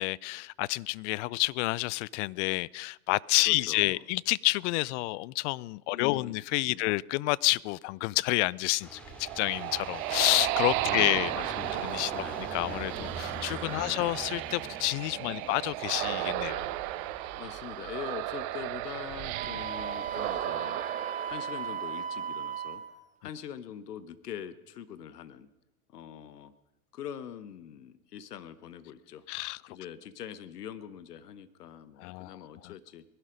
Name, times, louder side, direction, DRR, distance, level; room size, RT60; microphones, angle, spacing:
voice 1, 0.0-11.3 11.8-12.1 12.4-16.8 29.3-29.6 32.0-32.4 32.6-32.7, left 22 dB, 55° left, 0.4 m, -29 dB
voice 2, 3.4-4.0 5.9-6.4 6.7-6.9 10.8-12.4 13.6-14.1 15.1-15.5 17.3-20.8 21.3-22.8 23.2-25.5 25.9-26.5 26.9-29.2 29.7-33.0, left 9 dB, 85° left, 1.0 m, -43 dB
sound 1, 8.8-20.4, right 1 dB, ahead, 2.7 m, -46 dB
sound 2, 8.9-22.4, right 16 dB, 60° right, 0.9 m, -34 dB
Wind instrument woodwind instrument, 19.3-22.9, right 6 dB, 15° right, 1.5 m, -37 dB
21.0 x 11.5 x 5.1 m
hypercardioid pair, 95°, 46 cm